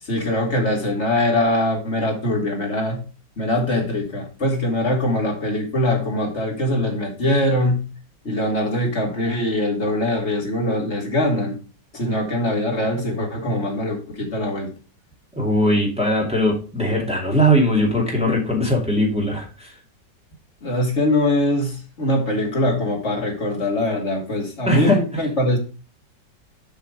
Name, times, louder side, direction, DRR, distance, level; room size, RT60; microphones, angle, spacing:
voice 1, 0.0-3.0 3.4-7.9 8.2-11.6 11.9-14.7 20.6-25.6, left 1 dB, 40° left, 2.5 m, -22 dB
voice 2, 15.4-19.7 24.7-25.0, equal, 5° right, 2.5 m, -20 dB
7.2 x 5.7 x 4.9 m
omnidirectional pair, 1.9 m